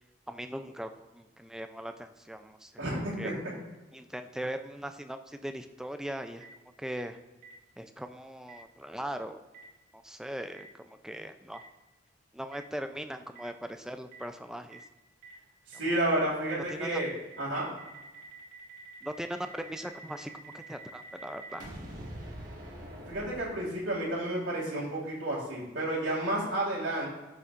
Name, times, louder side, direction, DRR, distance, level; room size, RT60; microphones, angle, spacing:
voice 1, 0.3-2.7 3.2-3.3 3.9-6.5 6.8-7.2 7.8-9.4 9.9-11.6 12.3-14.8 15.7-15.8 16.7-17.0 19.0-21.7, right 1 dB, 5° right, 8 dB, 0.4 m, -39 dB
voice 2, 2.8-3.3 15.7-17.7 23.1-27.1, right 1 dB, 85° right, -8 dB, 2.1 m, -31 dB
Boom, 6.4-6.5 7.4-7.5 8.5-8.6 9.5-9.6 10.5-10.6 11.5-11.6 12.5-12.6 13.3-13.4 14.1-14.2 14.7-14.8 15.2-15.3 15.7-15.8 16.1-16.2 16.5-24.0, right 2 dB, 45° right, 1.8 m, -46 dB
12.0 x 6.9 x 2.5 m, 1.1 s
head